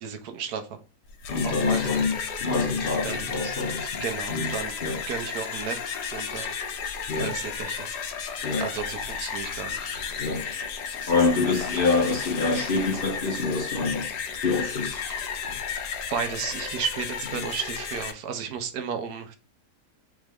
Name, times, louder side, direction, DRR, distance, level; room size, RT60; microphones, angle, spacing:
voice 1, 0.0-0.7 1.4-2.0 3.0-3.3 4.0-4.7 5.1-5.8 6.1-6.5 7.1-7.9 8.6-9.9 15.1-15.2 16.1-19.3, right 7 dB, 75° right, 1.2 m, -33 dB
sound 1, 1.1-18.1, left 6 dB, 85° left, 1.3 m, -33 dB
voice 2, 1.3-4.0 4.3-4.5 4.8-5.0 7.1-7.3 8.4-8.7 10.2-10.4 11.1-14.1 14.4-15.0, left 4 dB, 50° left, 0.7 m, -26 dB
3.8 x 3.5 x 3.1 m
omnidirectional pair, 1.7 m